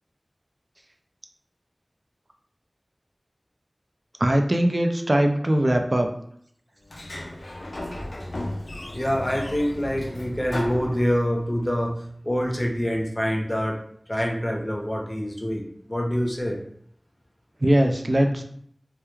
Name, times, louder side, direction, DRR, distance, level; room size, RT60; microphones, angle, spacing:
voice 1, 4.2-6.1 17.6-18.4, right 1 dB, 45° right, 4 dB, 0.3 m, -21 dB
Sliding door, 6.8-11.6, left 1 dB, 85° left, 0.4 m, -34 dB
voice 2, 8.9-13.8 14.1-16.6, equal, 25° left, 0 dB, 0.6 m, -26 dB
2.3 x 2.2 x 3.1 m, 0.65 s
wide cardioid pair, 50°, 0 cm